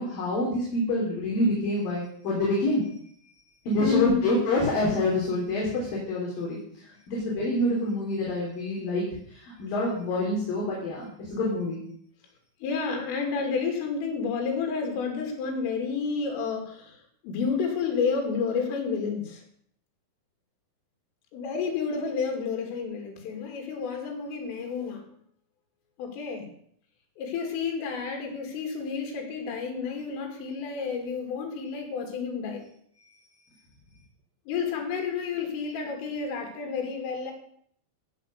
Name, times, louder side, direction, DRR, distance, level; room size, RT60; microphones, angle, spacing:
voice 1, 0.0-2.8 3.7-6.6 7.1-9.0 9.3-11.8, left 1 dB, 50° left, -4 dB, 4.7 m, -27 dB
voice 2, 3.8-4.2 12.6-17.0 17.2-19.4 21.3-25.1 26.0-26.5 27.2-32.7 34.5-37.3, left 5 dB, 85° left, 3 dB, 5.3 m, -30 dB
16.5 x 8.3 x 6.7 m, 0.64 s
omnidirectional pair, 5.7 m